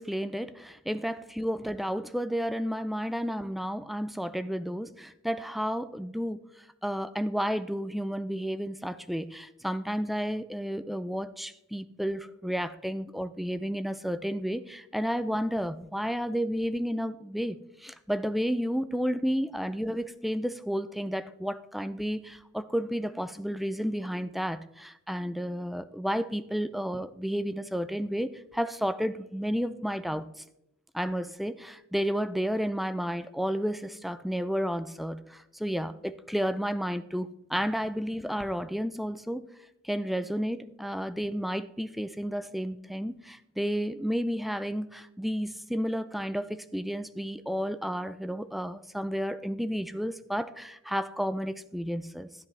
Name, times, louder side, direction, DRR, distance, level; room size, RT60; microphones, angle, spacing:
voice 1, 0.0-6.4 6.8-30.3 30.9-39.5 39.8-52.3, equal, ahead, 0.3 m, -32 dB
13.0 x 9.7 x 3.2 m
head